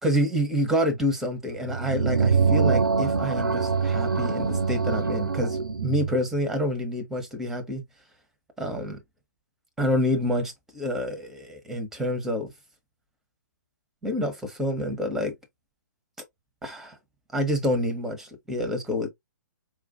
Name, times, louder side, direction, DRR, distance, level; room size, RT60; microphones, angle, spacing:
voice 1, 0.0-7.8 8.6-9.0 9.8-12.5 14.0-15.3 16.6-17.0 17.3-19.1, equal, 5° right, 0.9 m, -27 dB
sound 1, 1.6-6.2, right 5 dB, 85° right, 0.4 m, -24 dB
4.7 x 2.5 x 2.4 m
figure-of-eight pair, 130°, 11 cm